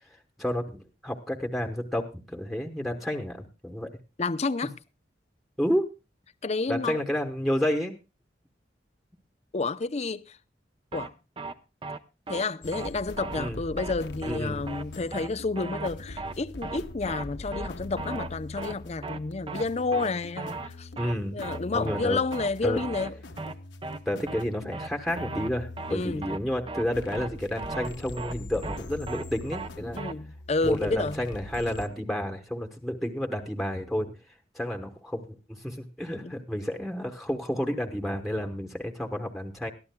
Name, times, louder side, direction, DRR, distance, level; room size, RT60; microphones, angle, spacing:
voice 1, 0.4-3.9 5.6-5.9 6.7-8.0 13.4-13.6 14.3-14.7 21.0-21.4 21.7-22.2 22.6-22.8 24.1-30.0 30.6-34.2 34.5-39.7, equal, ahead, 1.1 m, -30 dB
voice 2, 4.2-4.7 6.4-7.0 9.5-10.4 10.9-11.1 12.3-20.9 21.3-23.2 25.9-26.3 29.9-31.2 36.2-36.3, left 3 dB, 35° left, 0.6 m, -30 dB
sound 1, 10.9-11.1 11.4-11.5 11.8-12.0 12.3-12.4 12.7-12.9 13.2-13.5 13.8-13.9 14.2-14.4 14.7-14.8 15.1-15.3 15.6-15.9 16.2-16.3 16.6-16.8 17.1-17.2 17.5-17.7 18.0-18.3 18.6-18.7 19.0-19.2 19.5-19.6 19.9-20.1 20.4-20.7 21.0-21.1 21.4-21.6 21.9-22.0 22.3-22.5 22.8-23.1 23.4-23.5 23.8-24.0 24.3-24.4 24.7-24.9 25.2-25.5 25.8-25.9 26.2-26.4 26.7-26.8 27.1-27.3 27.6-27.9 28.2-28.3 28.6-28.8 29.1-29.2 29.5-29.7 30.0-30.1, right 3 dB, 30° right, 0.7 m, -36 dB
sound 2, 12.6-31.9, left 2 dB, 85° left, 1.1 m, -42 dB
21.5 x 14.0 x 2.2 m
head